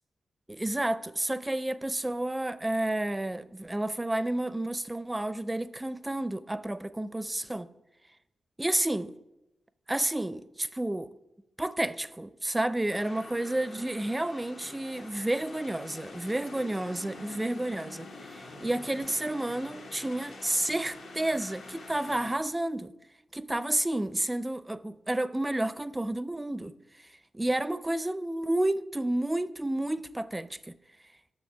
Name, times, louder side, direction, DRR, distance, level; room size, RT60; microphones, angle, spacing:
voice 1, 0.5-7.7 8.6-9.1 9.9-11.1 11.6-22.9 23.3-27.1 27.3-30.7, right 1 dB, 20° right, 0.4 m, -31 dB
sound 1, 12.9-22.4, left 2 dB, 80° left, 1.0 m, -46 dB
7.3 x 6.2 x 4.6 m
supercardioid pair, 45°, 0 cm